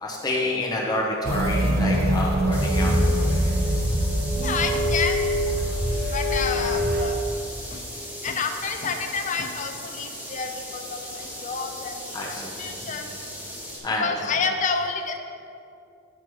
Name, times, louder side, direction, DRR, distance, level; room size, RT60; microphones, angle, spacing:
voice 1, 0.0-3.5 12.1-12.5 12.9-13.0 13.8-14.4, left 1 dB, 20° left, -3 dB, 0.8 m, -28 dB
sound 1, 1.2-7.0, equal, 50° right, 0.7 m, -23 dB
sound 2, 2.5-13.8, equal, 10° right, 1.3 m, -38 dB
voice 2, 4.4-5.6 6.1-7.2 7.7-7.8 8.2-12.3 12.6-13.1 14.0-15.2, left 5 dB, 35° left, 5 dB, 0.5 m, -29 dB
9.4 x 3.9 x 4.7 m, 2.7 s
head